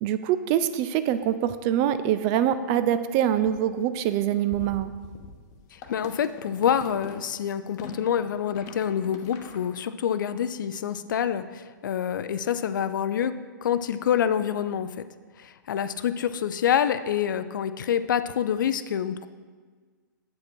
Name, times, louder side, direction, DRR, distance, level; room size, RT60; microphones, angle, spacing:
voice 1, 0.0-4.9, right 10 dB, 35° right, 12 dB, 0.4 m, -24 dB
sound 1, 1.1-1.2 1.8-1.9 2.1-2.4 2.6-2.8 3.2-9.6, left 4 dB, 30° left, 0.9 m, -44 dB
voice 2, 5.7-13.3 13.6-15.0 15.4-19.3, left 9 dB, 70° left, 13 dB, 0.4 m, -27 dB
8.2 x 5.2 x 4.4 m, 1.5 s
hypercardioid pair, 130°, 11 cm